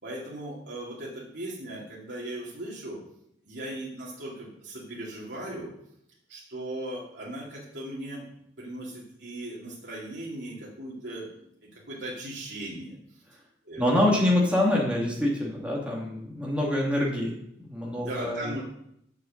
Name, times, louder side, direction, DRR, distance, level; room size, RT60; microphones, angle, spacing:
voice 1, 0.0-3.0 3.4-5.7 6.3-8.2 8.6-12.9 13.6-14.0 17.9-18.6, right 1 dB, 70° right, -6 dB, 2.5 m, -38 dB
voice 2, 13.8-17.4 17.7-18.5, left 1 dB, 5° right, -3 dB, 2.1 m, -25 dB
6.8 x 6.8 x 6.4 m, 0.74 s
head